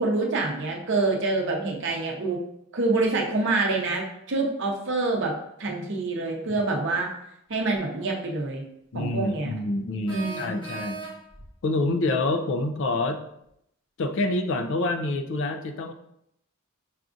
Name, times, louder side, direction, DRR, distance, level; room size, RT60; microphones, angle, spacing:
voice 1, 0.0-2.4 2.7-5.3 5.6-7.1 7.5-8.6 8.9-9.5 10.1-10.6, right 3 dB, 55° right, 0 dB, 0.7 m, -26 dB
voice 2, 8.9-11.0 11.6-13.2 14.0-15.9, left 2 dB, 55° left, 6 dB, 0.3 m, -27 dB
sound 1, 10.1-11.5, right 3 dB, 20° left, 0.9 m, -37 dB
5.7 x 2.4 x 2.5 m, 0.77 s
head